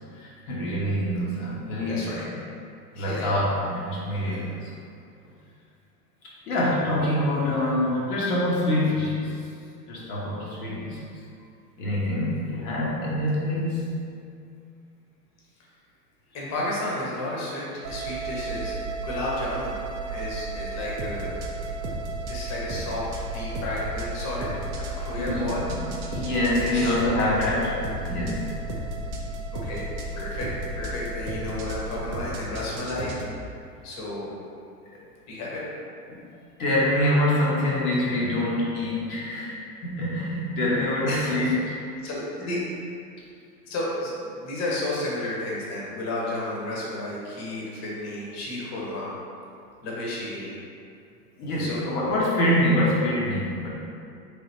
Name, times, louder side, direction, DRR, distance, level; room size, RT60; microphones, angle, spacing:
voice 1, 0.1-2.3 2.9-4.7 6.2-9.3 9.9-11.0 11.8-13.9 25.1-25.8 26.1-27.7 28.0-28.4 36.1-36.2 36.6-41.6 41.9-42.1 42.4-42.6 51.4-53.7, left 1 dB, 60° left, -6 dB, 0.9 m, -25 dB
voice 2, 1.9-2.2 3.0-3.3 4.2-4.5 9.4-9.5 16.3-19.8 20.0-21.4 22.3-24.6 24.9-25.7 26.5-27.6 29.5-29.9 30.1-33.2 33.8-34.3 35.3-35.7 41.1-41.5 42.0-42.6 43.7-49.1 49.8-50.5 51.6-51.8, left 1 dB, 35° left, -5 dB, 1.0 m, -32 dB
sound 1, 17.8-32.3, right 2 dB, 85° right, 0.6 m, -34 dB
sound 2, 21.0-33.3, right 1 dB, 30° right, 0.4 m, -36 dB
3.7 x 3.4 x 2.7 m, 2.4 s
hypercardioid pair, 95°, 48 cm